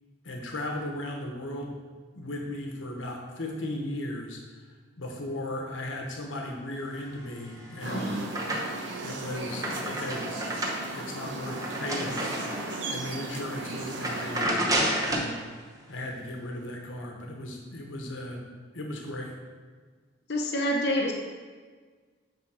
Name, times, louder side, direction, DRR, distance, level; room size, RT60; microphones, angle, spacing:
voice 1, 0.2-1.8 2.1-4.4 5.0-8.2 9.0-10.3 10.9-12.2 12.9-15.4 15.9-18.4 18.7-19.4, left 1 dB, 85° left, 1 dB, 1.0 m, -36 dB
sound 1, 7.4-9.0 9.3-13.0 13.4-13.6 13.9-15.3, right 1 dB, 20° right, 0.8 m, -31 dB
voice 2, 7.8-8.2 20.3-21.1, left 1 dB, 55° left, 0 dB, 0.7 m, -27 dB
sound 2, 7.8-14.4, right 2 dB, 75° right, 0.8 m, -36 dB
9.5 x 3.6 x 4.8 m, 1.5 s
head